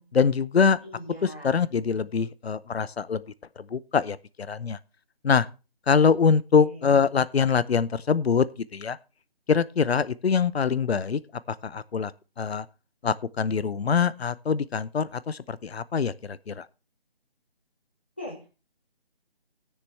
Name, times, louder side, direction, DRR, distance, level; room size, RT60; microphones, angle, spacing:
voice 1, 0.1-0.8 1.2-3.2 3.6-4.8 5.2-5.5 5.9-8.5 8.7-9.0 9.5-11.2 11.5-12.1 12.4-12.7 13.0-16.7, left 6 dB, 75° left, 0.7 m, -24 dB
voice 2, 0.8-1.7 6.5-6.9 18.2-18.5, left 1 dB, 10° left, 1.0 m, -40 dB
18.5 x 6.7 x 3.3 m
figure-of-eight pair, 175°, 31 cm